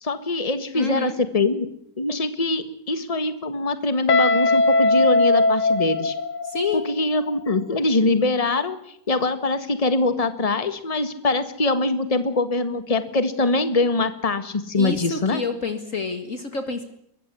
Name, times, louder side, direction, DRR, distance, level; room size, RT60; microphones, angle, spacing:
voice 1, 0.0-1.7 2.0-6.1 6.7-15.4, left 2 dB, 20° left, 11 dB, 1.6 m, -23 dB
voice 2, 0.7-1.2 6.4-6.8 14.7-16.8, left 4 dB, 50° left, 8 dB, 2.2 m, -28 dB
Guitar, 4.1-6.9, left 2 dB, 75° left, 2.0 m, -19 dB
23.0 x 15.0 x 9.8 m, 0.70 s
omnidirectional pair, 1.8 m